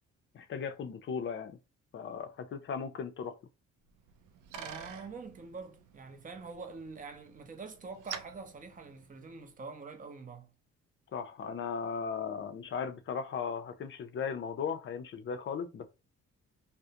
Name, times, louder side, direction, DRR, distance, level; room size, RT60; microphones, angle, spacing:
voice 1, 0.3-1.6 1.9-3.4 11.1-15.9, left 6 dB, 40° left, 0.5 m, -37 dB
Bicycle, 3.9-9.6, right 8 dB, 80° right, 0.5 m, -49 dB
voice 2, 4.5-10.5, right 4 dB, 25° right, 0.6 m, -45 dB
2.4 x 2.1 x 2.8 m
cardioid pair, 90°, 30 cm